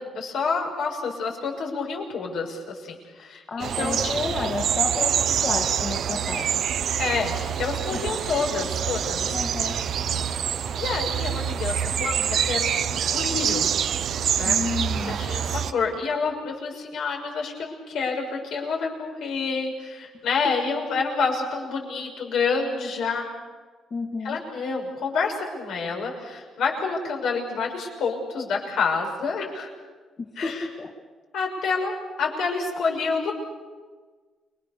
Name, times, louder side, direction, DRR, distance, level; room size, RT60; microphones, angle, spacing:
voice 1, 0.0-4.2 7.0-9.4 10.8-13.7 14.4-14.6 15.0-23.3 24.2-29.7 30.4-30.7 31.3-33.3, left 4 dB, 80° left, 1 dB, 6.3 m, -28 dB
voice 2, 3.5-6.5 7.9-8.0 9.3-9.8 14.4-15.2 23.9-24.4 30.2-30.9, left 4 dB, 45° left, 1 dB, 2.6 m, -31 dB
sound 1, 3.6-15.7, right 8 dB, 65° right, 0.9 m, -26 dB
29.5 x 23.0 x 6.9 m, 1.4 s
cardioid pair, 90°, 0 cm